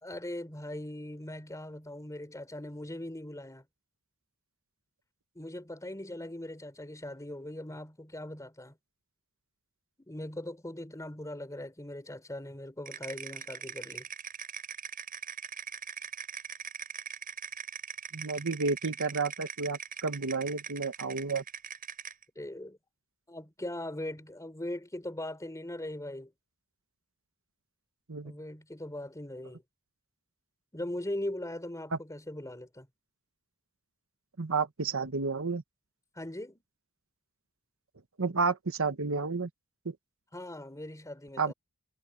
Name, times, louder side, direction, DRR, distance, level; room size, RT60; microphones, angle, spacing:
voice 1, 0.0-3.7 5.4-8.8 10.0-14.1 22.4-22.8 23.3-26.3 28.2-29.6 30.7-32.9 36.2-36.6 40.3-41.5, left 1 dB, 15° left, 3.6 m, -40 dB
sound 1, 12.9-22.2, right 7 dB, 40° right, 7.1 m, -41 dB
voice 2, 18.1-21.4 28.1-28.3 31.9-32.0 34.4-35.6 38.2-39.5 39.8-40.0 41.4-41.5, right 4 dB, 65° right, 1.2 m, -31 dB
head